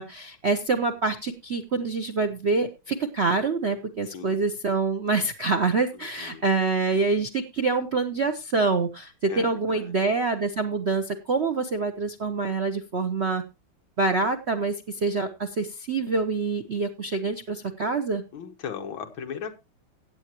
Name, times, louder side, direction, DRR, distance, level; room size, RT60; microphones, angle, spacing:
voice 1, 0.0-13.4 14.0-18.2, right 3 dB, 65° right, 6 dB, 0.6 m, -26 dB
voice 2, 4.1-4.5 5.9-6.5 9.2-10.1 18.3-19.5, left 7 dB, 65° left, 5 dB, 2.2 m, -38 dB
16.0 x 8.7 x 2.9 m, 0.25 s
omnidirectional pair, 2.4 m